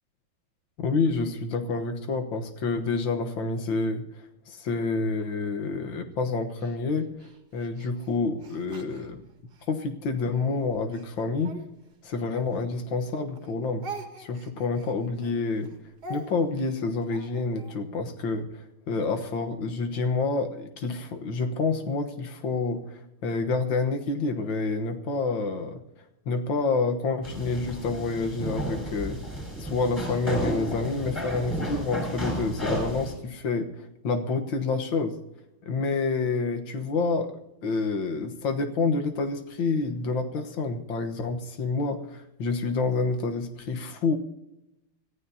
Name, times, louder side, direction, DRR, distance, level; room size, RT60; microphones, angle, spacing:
voice 1, 0.8-4.0 4.5-7.1 7.5-9.2 9.7-11.6 12.0-13.8 14.2-15.7 16.1-25.8 26.3-29.2 29.6-33.7 34.0-35.1 35.6-37.3 37.6-44.2, left 3 dB, 65° left, 6 dB, 2.0 m, -28 dB
Speech, 6.6-9.7 10.3-13.1 13.3-17.8, right 3 dB, 50° right, 2.2 m, -45 dB
sound 1, 27.2-33.1, equal, 5° left, 6.0 m, -32 dB
25.0 x 15.0 x 2.8 m, 0.88 s
omnidirectional pair, 2.4 m